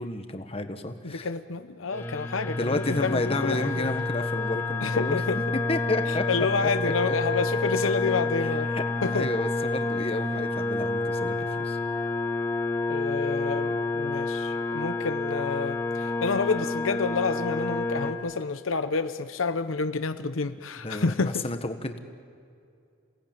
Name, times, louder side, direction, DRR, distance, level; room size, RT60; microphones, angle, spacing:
voice 1, 0.0-1.3 2.5-5.2 5.7-6.2 6.6-7.1 8.4-8.8 9.1-11.8 20.8-22.0, left 2 dB, 30° left, 7 dB, 1.4 m, -31 dB
voice 2, 1.0-3.9 4.8-5.4 6.3-8.7 9.0-9.3 10.4-10.5 12.9-21.4, left 4 dB, 80° left, 10 dB, 0.8 m, -29 dB
sound 1, 1.9-18.1, left 3 dB, 10° left, 2.2 m, -29 dB
28.5 x 18.0 x 9.2 m, 2.4 s
head